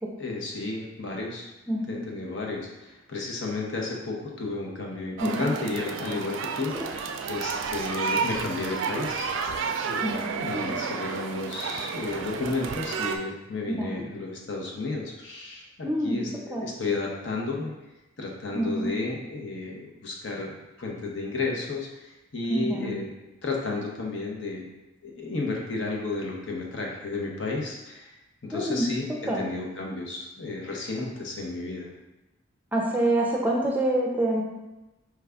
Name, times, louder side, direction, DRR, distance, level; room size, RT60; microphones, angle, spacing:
voice 1, 0.2-1.5 1.9-16.3 16.6-17.7 18.2-23.1 23.4-24.7 25.0-28.1 28.4-31.9, left 3 dB, 70° left, -1 dB, 0.8 m, -32 dB
voice 2, 1.7-2.0 5.2-5.5 10.0-10.7 13.7-14.0 15.8-16.2 16.5-16.7 18.5-18.9 22.5-23.0 28.5-28.9 29.3-29.4 32.7-34.4, right 1 dB, 10° right, -2 dB, 0.5 m, -26 dB
sound 1, 5.2-13.2, right 5 dB, 75° right, 0.3 m, -31 dB
4.7 x 2.4 x 3.3 m, 1.0 s
head